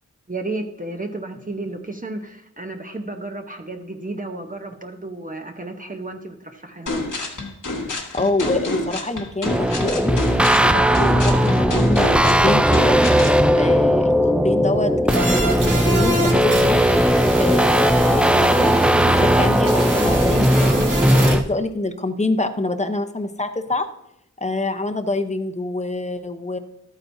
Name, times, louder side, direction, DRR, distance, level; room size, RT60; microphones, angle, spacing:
voice 1, 0.3-7.1, right 2 dB, 25° right, 4 dB, 0.8 m, -32 dB
sound 1, 6.9-13.4, left 2 dB, 75° left, 1.4 m, -28 dB
voice 2, 7.9-10.2 10.6-13.0 13.5-16.8 17.4-20.7 21.2-23.9 24.4-26.6, left 2 dB, 20° left, 7 dB, 0.8 m, -26 dB
sound 2, 9.4-21.4, equal, 5° right, 0.4 m, -17 dB
sound 3, 15.1-21.3, right 1 dB, 90° right, 1.6 m, -26 dB
12.5 x 8.9 x 2.7 m, 0.81 s
wide cardioid pair, 70°, 31 cm